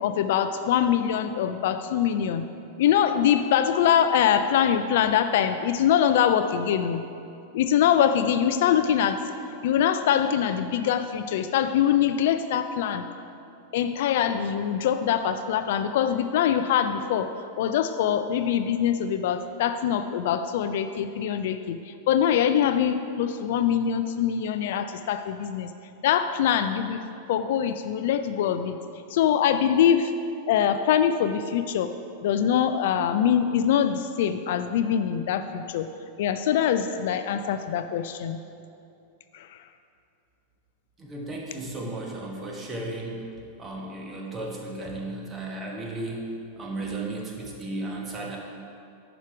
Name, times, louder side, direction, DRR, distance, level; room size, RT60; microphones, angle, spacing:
voice 1, 0.0-2.4 2.8-7.0 7.5-9.3 9.6-13.1 13.7-25.7 26.0-27.0 27.3-28.8 29.1-30.1 30.5-31.9 32.2-35.9 36.2-38.4 39.3-39.6, left 9 dB, 55° left, 10 dB, 0.3 m, -23 dB
voice 2, 41.0-43.2 43.6-46.2 46.6-48.4, right 2 dB, 20° right, -1 dB, 1.4 m, -34 dB
10.5 x 5.0 x 4.7 m, 2.6 s
figure-of-eight pair, 90°, 0 cm